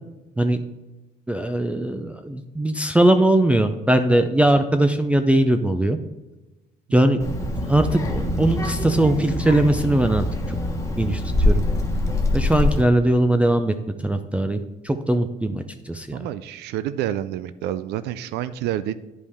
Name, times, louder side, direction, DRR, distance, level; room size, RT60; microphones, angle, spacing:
voice 1, 1.3-6.0 6.9-7.2 7.6-10.6 11.0-11.6 12.3-13.7 14.0-16.2, right 1 dB, 5° right, 6 dB, 0.4 m, -20 dB
Child speech kid speaking, 7.2-12.8, left 1 dB, 15° left, 1.2 m, -24 dB
voice 2, 16.1-18.9, right 12 dB, 80° right, 14 dB, 0.4 m, -28 dB
9.6 x 5.3 x 3.4 m, 1.1 s
cardioid pair, 110°, 17 cm